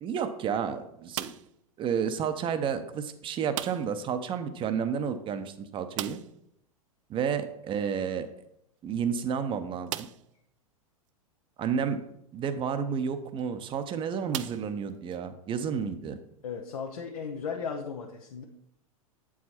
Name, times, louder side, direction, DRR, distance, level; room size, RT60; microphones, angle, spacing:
voice 1, 0.0-1.3 1.8-6.2 7.1-8.3 8.8-10.1 11.6-12.0 12.3-16.2, right 7 dB, 25° right, 10 dB, 0.7 m, -31 dB
sound 1, 1.1-1.7 3.5-4.1 4.3-4.4 4.7-4.8 5.9-6.5 8.2-8.3 9.0-9.1 9.9-10.4 11.1-11.2 13.2-13.4 14.3-15.2, right 13 dB, 55° right, 0.4 m, -38 dB
voice 2, 16.4-18.4, left 6 dB, 70° left, 1 dB, 0.9 m, -36 dB
8.1 x 4.8 x 4.3 m, 0.77 s
figure-of-eight pair, 95°, 19 cm